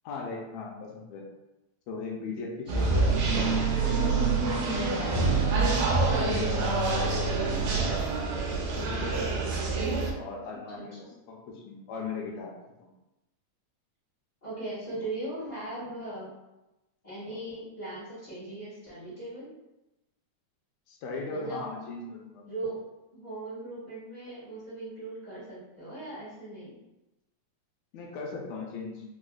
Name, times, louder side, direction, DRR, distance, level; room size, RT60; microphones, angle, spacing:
voice 1, 0.0-1.2 1.9-3.2 3.8-4.1 4.9-5.8 6.3-8.0 8.8-9.4 10.1-11.0 11.3-12.5 12.8-12.9 20.9-22.4 27.9-29.0, left 4 dB, 80° left, -1 dB, 1.6 m, -38 dB
sound 1, 2.7-10.1, right 3 dB, 75° right, 1.6 m, -26 dB
voice 2, 10.7-11.1 14.4-16.3 17.0-19.5 21.3-21.7 22.4-22.8 23.1-26.8, right 2 dB, 60° left, -13 dB, 0.4 m, -39 dB
4.9 x 2.0 x 2.3 m, 0.97 s
omnidirectional pair, 3.5 m